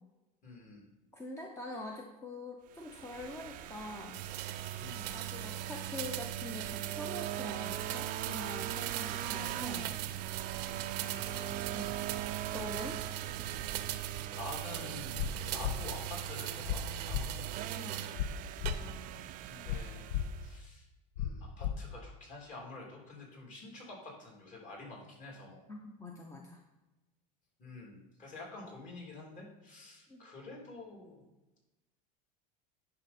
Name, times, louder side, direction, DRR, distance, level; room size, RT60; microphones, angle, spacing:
voice 1, 0.4-0.9 4.8-5.1 10.7-12.2 13.8-17.3 18.8-19.0 19.5-20.1 20.4-20.9 21.2-25.6 27.6-31.2, left 2 dB, 35° left, -2 dB, 3.0 m, -48 dB
voice 2, 1.1-4.2 5.1-10.0 11.7-11.9 12.5-13.0 17.7-18.1 25.7-26.6 30.1-30.2, left 2 dB, 15° left, 1 dB, 0.8 m, -44 dB
sound 1, 2.7-20.6, right 12 dB, 40° right, 0.5 m, -42 dB
sound 2, 4.1-18.2 18.7-19.2, right 12 dB, 85° right, 0.7 m, -40 dB
sound 3, 15.2-15.3 15.6-15.7 16.7-16.8 17.1-17.2 18.2-18.3 18.6-18.7 19.7-19.8 20.1-20.2 21.2-21.3 21.6-21.7, left 11 dB, 70° left, 0.7 m, -32 dB
10.5 x 5.4 x 4.3 m, 1.1 s
supercardioid pair, 135°, 21 cm